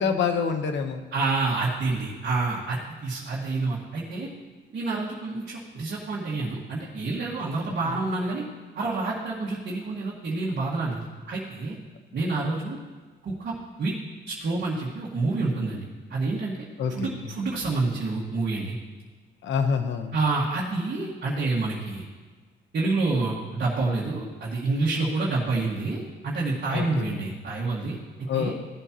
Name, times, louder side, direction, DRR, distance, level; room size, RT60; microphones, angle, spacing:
voice 1, 0.0-1.0 7.9-8.0 16.8-17.1 19.4-20.1 26.7-27.3 28.3-28.5, left 6 dB, 70° left, 7 dB, 1.1 m, -27 dB
voice 2, 1.1-4.3 4.7-8.4 8.8-11.8 12.1-12.8 13.2-13.9 14.3-17.1 17.4-18.8 20.1-22.0 22.7-28.0 28.3-28.5, right 3 dB, 55° right, -6 dB, 2.0 m, -28 dB
16.5 x 8.0 x 3.1 m, 1.4 s
cardioid pair, 90°, 20 cm